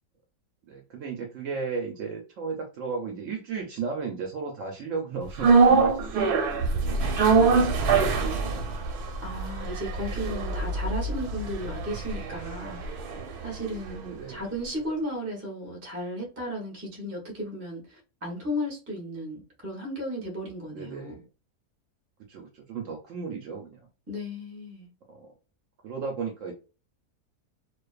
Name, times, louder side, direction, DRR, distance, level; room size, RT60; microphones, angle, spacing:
voice 1, 0.7-8.7 14.0-14.4 20.7-21.3 22.3-23.8 25.1-25.3 25.8-26.5, right 5 dB, 65° right, 0.8 m, -35 dB
sound 1, 5.4-13.7 14.0-14.1, right 4 dB, 90° right, 1.2 m, -24 dB
voice 2, 9.2-12.8 13.4-21.1 24.1-24.9, equal, 15° right, 0.4 m, -35 dB
2.5 x 2.3 x 2.3 m
omnidirectional pair, 1.7 m